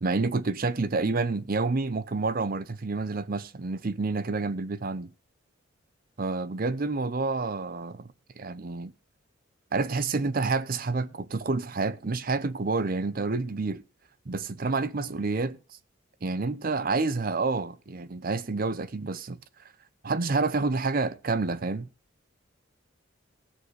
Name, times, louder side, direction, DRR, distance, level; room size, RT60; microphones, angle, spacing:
voice 1, 0.0-5.1 6.2-8.1 8.4-8.9 9.7-13.8 14.3-15.6 16.2-19.4 20.0-21.9, right 3 dB, 45° right, 0.6 m, -28 dB
18.5 x 6.9 x 3.1 m
head